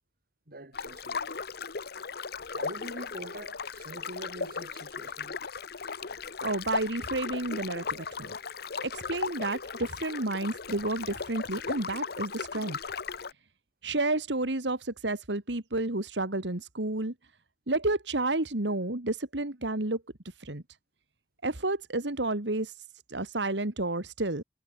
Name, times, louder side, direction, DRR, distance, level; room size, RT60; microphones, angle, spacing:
voice 1, 0.5-1.3 2.5-5.4, right 1 dB, 55° right, 3.6 m, -44 dB
sound 1, 0.7-13.3, left 5 dB, 60° left, 1.1 m, -37 dB
voice 2, 6.4-8.4 8.8-12.8 13.8-17.1 17.7-20.0 20.4-20.6 21.4-22.8 23.1-24.4, right 2 dB, 75° right, 2.3 m, -31 dB
head